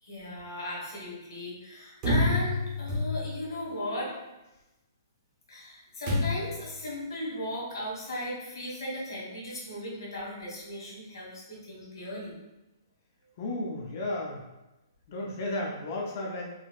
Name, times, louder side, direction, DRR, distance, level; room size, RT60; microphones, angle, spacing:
voice 1, 0.0-4.1 5.5-12.4, left 1 dB, 80° left, -4 dB, 1.4 m, -37 dB
sound 1, 2.0-3.5 6.1-6.6, left 2 dB, 20° right, 0.7 m, -28 dB
voice 2, 13.4-14.4 15.1-16.4, left 2 dB, 35° left, -1 dB, 0.5 m, -33 dB
3.9 x 2.0 x 2.4 m, 0.99 s
hypercardioid pair, 170°, 2 cm